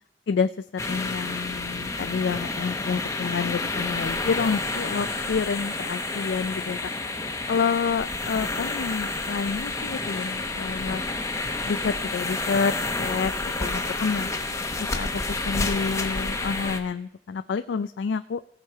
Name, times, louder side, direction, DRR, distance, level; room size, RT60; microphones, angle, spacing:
voice 1, 0.3-6.8 7.2-11.0 11.7-13.3 13.6-14.3 14.8-18.4, left 5 dB, 80° left, 11 dB, 0.4 m, -28 dB
sound 1, 0.8-16.8, left 2 dB, 15° left, 0.9 m, -29 dB
17.5 x 6.5 x 4.6 m, 0.83 s
head